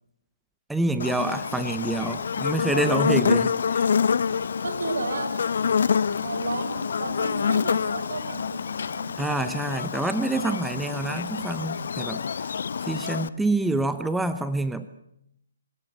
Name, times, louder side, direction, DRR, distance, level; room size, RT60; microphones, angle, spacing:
voice 1, 0.7-3.9 9.2-12.2 12.9-14.9, right 2 dB, 5° right, 11 dB, 0.8 m, -27 dB
Buzz, 1.0-13.3, left 6 dB, 65° left, 0.9 m, -27 dB
voice 2, 2.7-3.2 4.6-5.4 5.7-9.4, right 2 dB, 75° right, 9 dB, 4.7 m, -33 dB
25.5 x 18.0 x 7.8 m, 0.74 s
hypercardioid pair, 145°, 0 cm